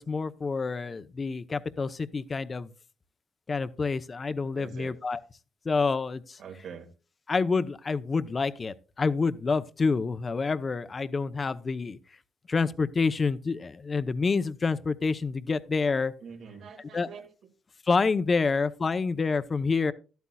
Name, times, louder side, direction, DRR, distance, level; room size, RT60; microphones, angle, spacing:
voice 1, 0.0-2.7 3.5-5.2 5.6-6.4 7.3-12.0 12.5-16.1 16.9-17.1 17.9-19.9, left 4 dB, 35° left, 0.8 m, -28 dB
voice 2, 4.6-5.0 6.4-6.9 16.2-17.3 19.9-20.0, right 6 dB, 70° right, 2.3 m, -44 dB
12.5 x 12.0 x 2.3 m
cardioid pair, 90°, 0 cm